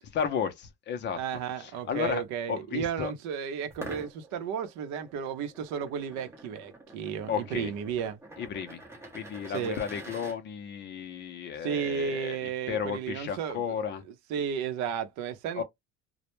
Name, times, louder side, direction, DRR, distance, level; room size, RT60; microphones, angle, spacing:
voice 1, 0.1-2.2 2.5-3.1 7.3-7.7 8.4-8.8 9.1-14.0 15.5-15.6, left 7 dB, 40° left, 0.5 m, -33 dB
voice 2, 1.2-8.2 9.5-9.8 11.6-13.6 14.3-15.6, right 7 dB, 70° right, 0.6 m, -33 dB
sound 1, 3.7-10.4, right 2 dB, 10° right, 0.5 m, -47 dB
2.1 x 2.1 x 3.0 m
cardioid pair, 160°, 29 cm